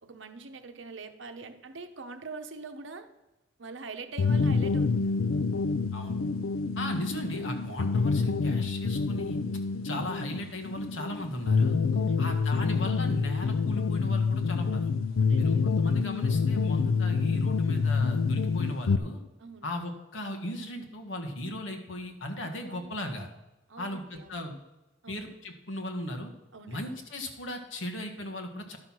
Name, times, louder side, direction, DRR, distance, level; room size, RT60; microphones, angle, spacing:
voice 1, 0.0-3.1 3.6-5.2 11.9-12.7 15.1-15.9 19.4-19.7 22.7-23.0 23.7-24.4 25.0-25.2 26.5-26.9, right 4 dB, 70° right, 8 dB, 0.9 m, -44 dB
sound 1, 4.2-19.0, left 4 dB, 85° left, 0.4 m, -27 dB
voice 2, 6.7-9.4 9.8-11.8 12.2-14.9 15.4-19.2 19.6-23.3 23.8-24.5 25.1-26.3 26.7-28.8, left 1 dB, 70° left, 3 dB, 1.5 m, -37 dB
11.5 x 5.7 x 6.1 m, 0.99 s
head